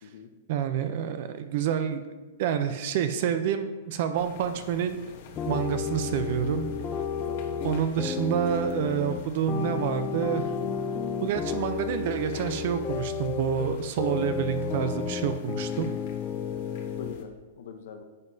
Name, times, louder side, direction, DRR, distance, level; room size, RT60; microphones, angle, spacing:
voice 1, 0.5-2.0 2.4-5.0 5.5-6.7 7.6-10.4 11.2-15.9, right 9 dB, 45° right, 9 dB, 0.5 m, -28 dB
sound 1, 4.2-17.2, left 4 dB, 45° left, 1.1 m, -48 dB
sound 2, 5.4-17.2, left 7 dB, 20° left, 0.5 m, -32 dB
voice 2, 7.2-7.5 16.5-17.3 17.6-18.0, left 6 dB, 60° left, 5 dB, 0.7 m, -44 dB
10.5 x 7.4 x 2.7 m, 1.2 s
supercardioid pair, 170°, 0 cm